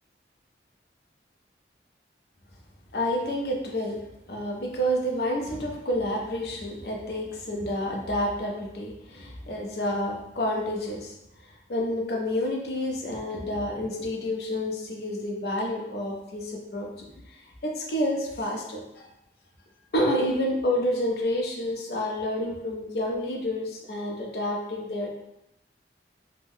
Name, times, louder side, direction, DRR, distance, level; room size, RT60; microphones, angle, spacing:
voice 1, 2.9-4.0 4.3-11.1 11.7-17.4 17.6-19.1 19.9-25.2, left 1 dB, 60° left, 0 dB, 0.6 m, -29 dB
2.6 x 2.1 x 3.5 m, 0.87 s
head